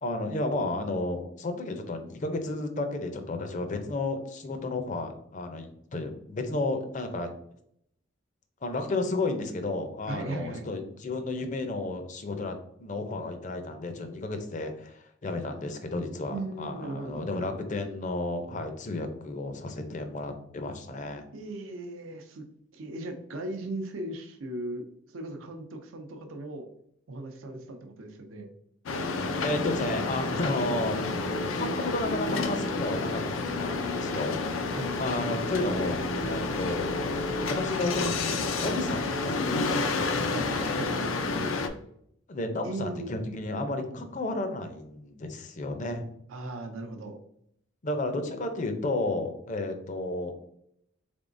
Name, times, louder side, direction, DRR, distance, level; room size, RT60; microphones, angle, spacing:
voice 1, 0.0-7.3 8.6-21.2 29.4-31.0 31.6-33.2 33.6-34.4 35.0-40.0 42.3-46.1 47.8-50.4, left 2 dB, 40° left, 6 dB, 0.5 m, -32 dB
voice 2, 10.1-10.7 16.3-17.5 21.3-22.5 22.7-24.9 25.1-26.7 27.1-28.5 34.7-34.9 40.3-41.3 42.6-43.1 46.3-47.2, right 2 dB, 90° right, 5 dB, 0.5 m, -37 dB
sound 1, 28.9-41.7, left 3 dB, 90° left, 0.4 m, -30 dB
3.8 x 3.5 x 2.5 m, 0.71 s
head